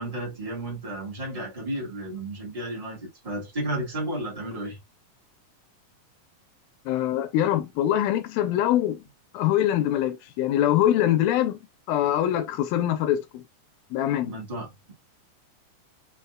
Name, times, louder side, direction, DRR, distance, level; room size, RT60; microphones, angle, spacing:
voice 1, 0.0-4.8 14.2-14.9, right 1 dB, 30° right, 0.6 m, -33 dB
voice 2, 6.9-9.0 9.3-11.6 11.9-13.4 13.9-14.3, left 12 dB, 85° left, 2.4 m, -23 dB
5.7 x 2.7 x 2.3 m
omnidirectional pair, 4.1 m